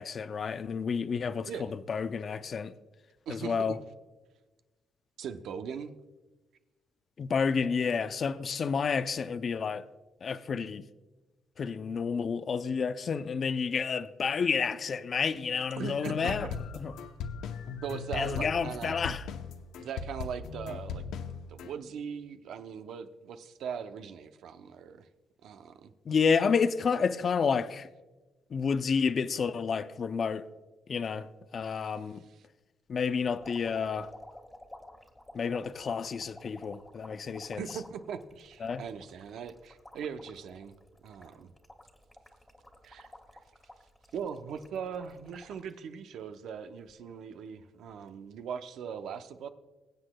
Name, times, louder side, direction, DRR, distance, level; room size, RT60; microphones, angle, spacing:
voice 1, 0.0-2.7 3.3-3.8 7.2-9.8 10.2-10.8 11.6-16.5 16.7-16.9 18.1-19.2 26.1-27.9 28.5-30.5 30.9-32.2 32.9-34.1 35.3-37.6 38.6-38.8, left 6 dB, 50° left, 0.5 m, -30 dB
voice 2, 3.3-3.8 5.2-6.0 15.8-16.4 17.8-19.0 19.8-21.0 21.5-25.1 25.4-25.9 37.4-40.8 41.0-41.5 42.8-43.1 44.1-49.5, right 7 dB, 75° right, 0.6 m, -40 dB
sound 1, 15.8-21.7, left 6 dB, 90° left, 0.7 m, -38 dB
sound 2, 33.4-45.7 46.2-46.9 47.9-48.1, left 1 dB, 5° left, 1.5 m, -53 dB
22.5 x 7.8 x 2.2 m
cardioid pair, 90°, 0 cm